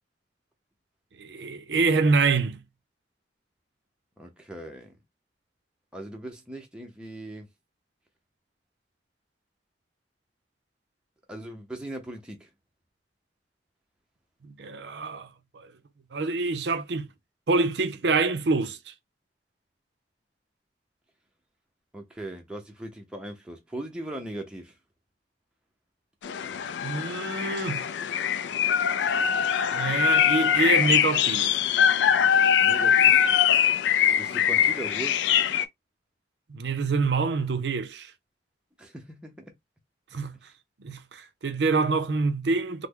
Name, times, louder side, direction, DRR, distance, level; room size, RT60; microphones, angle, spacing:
voice 1, 1.2-2.6 14.4-15.3 15.5-15.7 16.1-17.1 17.5-18.9 26.8-27.9 29.7-31.6 36.5-38.1 40.1-40.4 40.8-42.9, right 4 dB, 65° right, 0.5 m, -26 dB
voice 2, 4.2-5.0 5.9-7.5 11.3-12.5 21.9-24.8 32.6-33.3 34.2-35.2 38.8-39.4, right 1 dB, 5° right, 0.5 m, -39 dB
sound 1, 26.2-35.7, left 9 dB, 70° left, 0.3 m, -22 dB
3.1 x 2.1 x 3.6 m
head